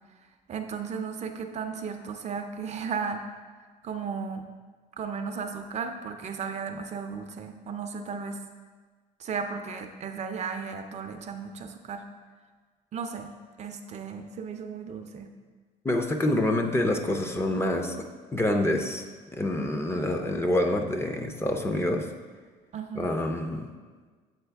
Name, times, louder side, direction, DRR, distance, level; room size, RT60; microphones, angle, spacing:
voice 1, 0.5-3.2 3.8-4.4 5.0-8.4 9.2-12.0 12.9-13.3 13.6-15.3 22.7-23.1, right 6 dB, 40° right, 6 dB, 0.5 m, -35 dB
voice 2, 15.8-22.1 23.0-23.7, left 1 dB, 15° left, 4 dB, 0.5 m, -27 dB
8.0 x 3.9 x 3.4 m, 1.5 s
cardioid pair, 110°, 17 cm